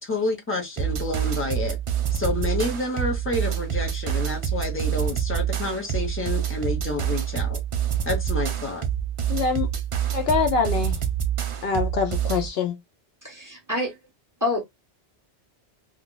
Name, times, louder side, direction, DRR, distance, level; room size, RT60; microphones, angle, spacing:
voice 1, 0.0-1.8 2.1-7.6 8.0-8.8, left 2 dB, 15° left, 0.8 m, -29 dB
sound 1, 0.8-12.5, right 9 dB, 50° right, 0.4 m, -27 dB
voice 2, 9.3-9.7 10.1-11.0 11.6-12.7, left 5 dB, 70° left, 0.8 m, -24 dB
voice 3, 13.2-13.9 14.4-14.6, left 2 dB, 15° right, 1.2 m, -27 dB
2.3 x 2.3 x 3.7 m
omnidirectional pair, 1.1 m